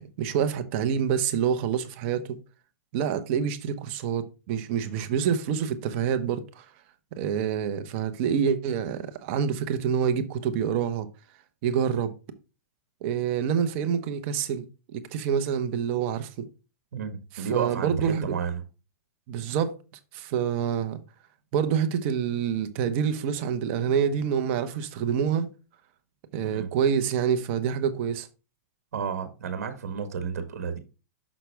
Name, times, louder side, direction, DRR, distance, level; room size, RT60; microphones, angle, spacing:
voice 1, 0.0-2.4 2.9-6.7 7.1-11.1 11.6-12.1 13.0-14.6 14.9-16.4 17.3-18.4 19.3-19.8 20.1-21.0 21.5-25.5 26.3-28.3, right 8 dB, 50° right, 1.1 m, -27 dB
voice 2, 16.9-18.6 26.4-26.7 28.9-30.8, right 6 dB, 75° right, 1.5 m, -31 dB
6.3 x 5.8 x 3.4 m
hypercardioid pair, 135°, 8 cm